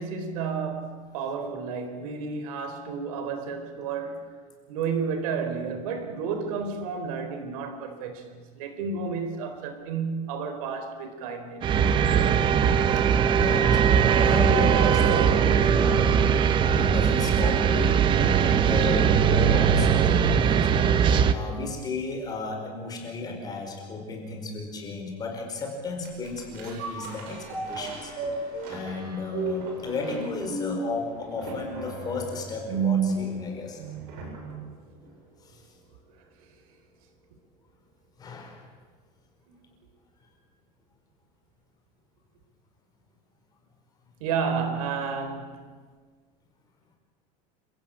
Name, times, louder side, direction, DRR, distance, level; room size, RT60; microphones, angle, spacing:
voice 1, 0.0-4.3 4.7-11.8 12.1-12.5 39.5-39.7 44.2-45.6, right 5 dB, 80° right, 4.0 m, -32 dB
sound 1, 11.6-21.3, right 7 dB, 25° right, 1.0 m, -20 dB
voice 2, 13.3-16.2 16.6-28.1 28.7-33.8 35.4-35.7 38.2-38.7, left 3 dB, 20° left, 5.0 m, -34 dB
sound 2, 26.0-34.6 35.0-35.1, right 4 dB, 55° right, 7.2 m, -33 dB
29.0 x 15.0 x 8.9 m
cardioid pair, 165°, 18 cm